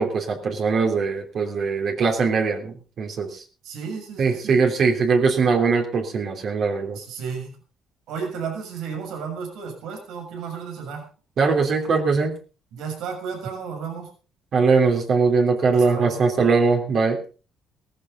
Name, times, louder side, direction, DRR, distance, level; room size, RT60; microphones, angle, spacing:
voice 1, 0.0-3.4 4.2-7.0 11.4-12.3 14.5-17.2, right 4 dB, 55° right, 2 dB, 3.2 m, -21 dB
voice 2, 3.6-4.6 6.9-7.5 8.1-11.1 12.7-14.1 15.7-16.2, right 6 dB, 85° right, 2 dB, 6.7 m, -33 dB
17.5 x 14.5 x 4.0 m, 0.35 s
cardioid pair, 110°, 0 cm